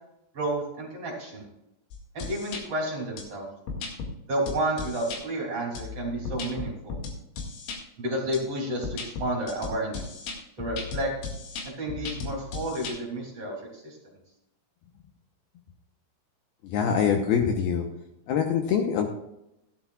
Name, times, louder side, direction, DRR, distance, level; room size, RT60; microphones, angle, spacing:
voice 1, 0.3-1.5 2.1-3.5 4.3-7.0 8.0-10.2 10.6-11.1 11.8-14.1, right 1 dB, 35° right, -2 dB, 3.5 m, -31 dB
sound 1, 1.9-2.6 3.2-3.3 3.7-4.1 4.5-5.2 5.8-7.8 8.3-8.4 8.8-13.0, left 4 dB, 90° left, 4.5 m, -36 dB
voice 2, 16.6-17.9 18.3-19.1, left 7 dB, 75° left, 3 dB, 2.5 m, -24 dB
16.0 x 12.0 x 2.4 m, 0.85 s
omnidirectional pair, 5.2 m